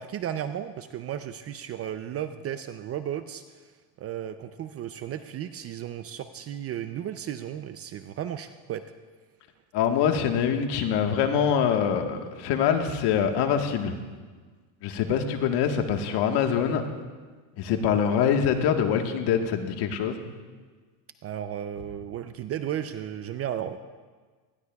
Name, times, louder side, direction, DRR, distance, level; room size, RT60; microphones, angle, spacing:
voice 1, 0.0-8.9 17.7-18.2 21.2-23.8, right 10 dB, 30° right, 10 dB, 0.4 m, -34 dB
voice 2, 9.7-13.9 14.8-16.8 17.6-20.2, left 8 dB, 55° left, 5 dB, 1.5 m, -24 dB
19.5 x 15.5 x 2.3 m, 1.4 s
supercardioid pair, 115°, 49 cm